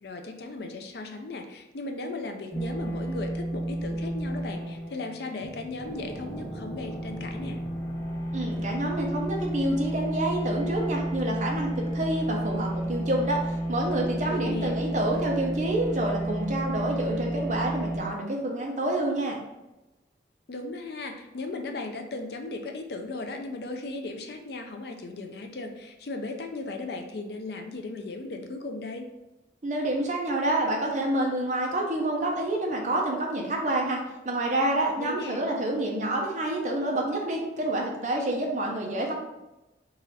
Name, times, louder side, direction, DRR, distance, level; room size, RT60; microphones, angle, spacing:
voice 1, 0.0-7.6 14.3-14.8 20.5-29.1 35.0-35.4, left 2 dB, 60° left, 4 dB, 0.5 m, -36 dB
sound 1, 2.5-18.0, right 1 dB, 15° left, 1.2 m, -32 dB
voice 2, 8.3-19.4 29.6-34.0 34.2-39.1, right 1 dB, 40° right, 0 dB, 0.7 m, -28 dB
4.0 x 2.5 x 4.1 m, 1.0 s
head